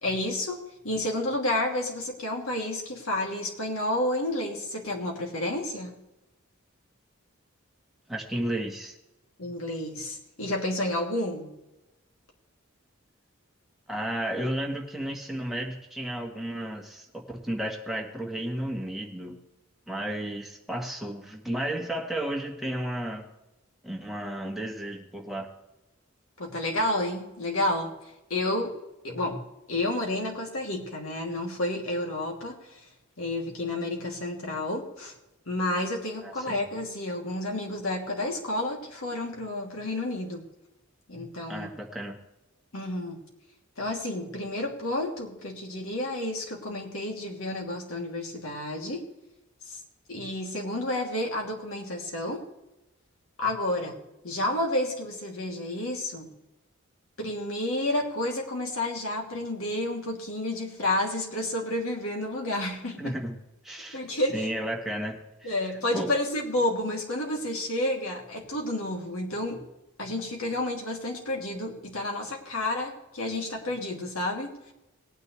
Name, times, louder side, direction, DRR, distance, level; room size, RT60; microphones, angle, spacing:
voice 1, 0.0-6.0 9.4-11.5 26.4-27.9 28.3-28.7 29.0-29.4 29.7-32.9 33.2-35.1 35.5-40.4 41.1-41.7 42.7-43.2 43.8-49.0 49.7-49.8 50.1-52.4 53.4-54.0 54.2-56.3 57.2-63.1 63.9-64.4 65.4-69.6 70.0-74.7, left 1 dB, 90° left, 0 dB, 2.8 m, -30 dB
voice 2, 8.1-8.9 13.9-19.4 19.9-23.3 23.8-25.5 36.2-36.6 41.5-42.2 63.0-63.4 63.6-64.0 64.3-65.6 65.9-66.1, right 1 dB, ahead, 0 dB, 1.5 m, -33 dB
19.5 x 9.5 x 3.3 m, 0.94 s
head